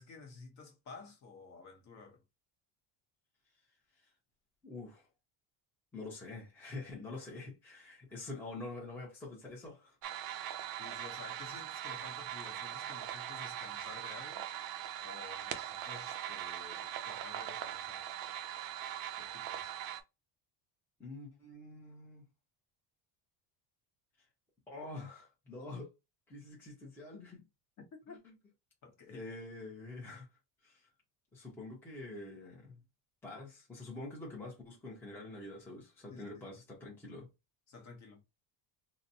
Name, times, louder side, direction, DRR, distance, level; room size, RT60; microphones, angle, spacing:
voice 1, 0.0-2.2 10.8-14.5 15.0-18.0 19.1-19.7 27.9-28.2 28.8-29.3 36.1-36.4 37.7-38.2, left 4 dB, 35° left, 0.9 m, -52 dB
voice 2, 4.6-5.1 5.9-10.0 21.0-22.2 24.7-25.9 26.3-27.4 28.1-28.3 29.1-30.3 30.6-30.9 31.3-32.8 33.2-37.3, left 2 dB, 5° left, 0.6 m, -46 dB
sound 1, 10.0-20.0, right 11 dB, 45° right, 0.4 m, -41 dB
4.0 x 2.1 x 2.7 m
cardioid pair, 170°, 48 cm